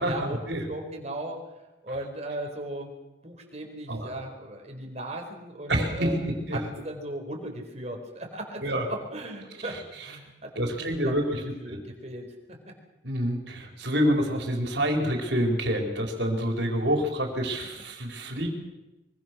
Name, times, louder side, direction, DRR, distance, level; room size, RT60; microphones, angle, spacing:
voice 1, 0.0-0.4 0.7-1.4 1.8-2.9 3.2-6.2 6.5-12.7, right 1 dB, 35° right, 2 dB, 4.7 m, -37 dB
voice 2, 5.7-6.6 8.6-8.9 10.5-11.4 11.7-11.8 13.0-18.5, equal, 65° right, 2 dB, 4.8 m, -27 dB
24.0 x 24.0 x 6.4 m, 1.0 s
head